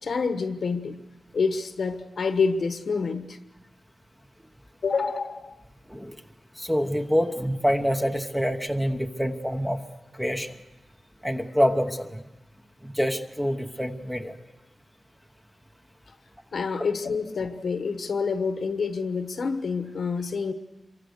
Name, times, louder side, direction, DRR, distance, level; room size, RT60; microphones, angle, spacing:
voice 1, 0.0-1.0 1.3-3.4 4.8-5.5 16.5-20.5, left 5 dB, 60° left, 8 dB, 1.3 m, -27 dB
voice 2, 6.6-9.8 10.1-10.5 11.2-12.2 12.8-14.4, equal, 5° right, 4 dB, 1.1 m, -26 dB
27.0 x 23.5 x 6.6 m, 1.0 s
wide cardioid pair, 170°, 0 cm